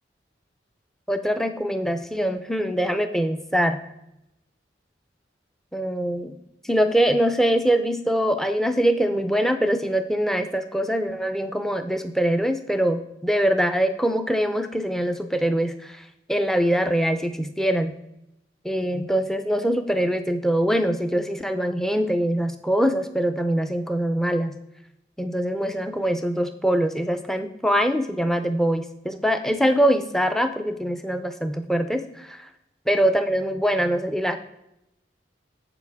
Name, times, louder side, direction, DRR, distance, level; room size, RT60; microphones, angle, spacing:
voice 1, 1.1-3.8 5.7-6.4 6.6-17.9 18.6-24.6 25.2-32.5 32.9-34.4, equal, ahead, 8 dB, 0.4 m, -23 dB
7.7 x 6.8 x 3.5 m, 0.83 s
head